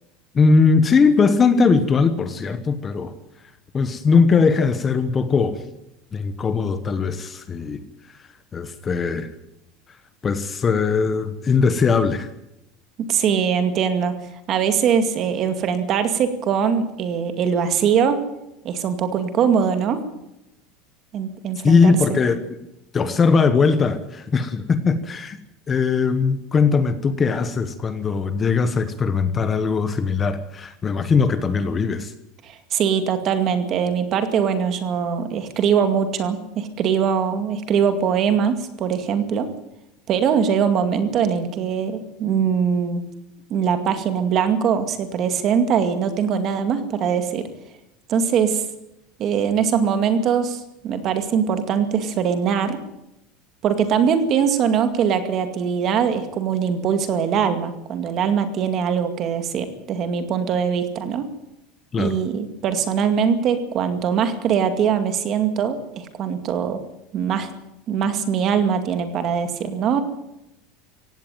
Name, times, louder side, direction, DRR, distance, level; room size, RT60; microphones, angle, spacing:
voice 1, 0.3-3.1 3.7-5.6 6.1-7.8 8.5-9.3 10.2-12.3 21.6-22.4 22.9-25.4 25.7-32.1 61.9-62.2, left 5 dB, 15° left, 11 dB, 1.1 m, -19 dB
voice 2, 13.0-14.2 14.5-18.2 18.6-20.0 21.1-22.2 32.4-39.5 40.1-43.0 43.5-47.5 48.1-48.6 49.2-52.8 53.6-61.3 62.0-66.8 67.1-67.5 67.9-70.0, right 7 dB, 30° right, 9 dB, 2.2 m, -22 dB
17.0 x 16.5 x 9.2 m, 0.87 s
cardioid pair, 175°, 0 cm